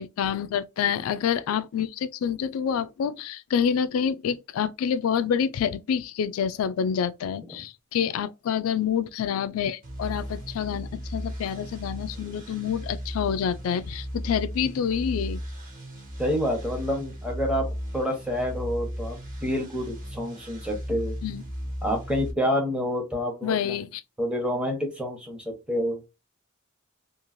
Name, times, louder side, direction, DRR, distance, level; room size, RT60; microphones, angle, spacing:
voice 1, 0.0-15.4 21.2-21.4 23.4-24.0, left 8 dB, 90° left, 0.3 m, -27 dB
sound 1, 9.8-22.3, equal, 40° right, 1.2 m, -36 dB
voice 2, 16.2-17.7 17.9-21.2 21.8-23.8 24.2-26.0, equal, 5° right, 0.9 m, -28 dB
3.1 x 2.4 x 2.5 m
head